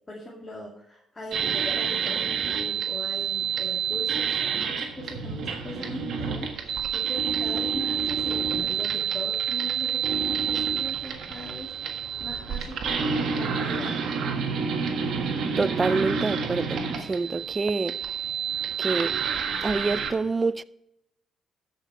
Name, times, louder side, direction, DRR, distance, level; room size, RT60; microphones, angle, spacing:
voice 1, 0.1-14.0, left 1 dB, 25° left, 2.1 m, -40 dB
sound 1, 1.3-20.1, right 6 dB, 70° right, 1.5 m, -28 dB
voice 2, 15.6-18.0 18.8-19.1 19.6-20.6, right 3 dB, 25° right, 0.4 m, -27 dB
13.5 x 5.7 x 4.8 m
cardioid pair, 90°, 0 cm